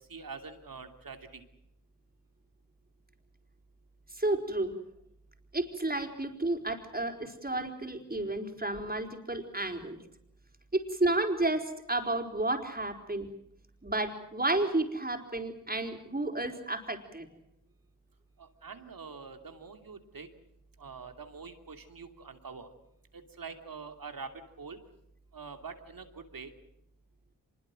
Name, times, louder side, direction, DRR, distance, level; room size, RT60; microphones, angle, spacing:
voice 1, 0.1-1.4 18.4-20.3 20.8-22.7 23.4-24.3 24.6-24.8 25.3-26.5, right 5 dB, 75° right, 6 dB, 2.9 m, -45 dB
voice 2, 4.2-4.7 5.5-10.0 10.7-13.3 13.8-17.3, right 2 dB, 25° right, 4 dB, 4.6 m, -31 dB
25.0 x 22.0 x 7.7 m, 0.77 s
cardioid pair, 40°, 35 cm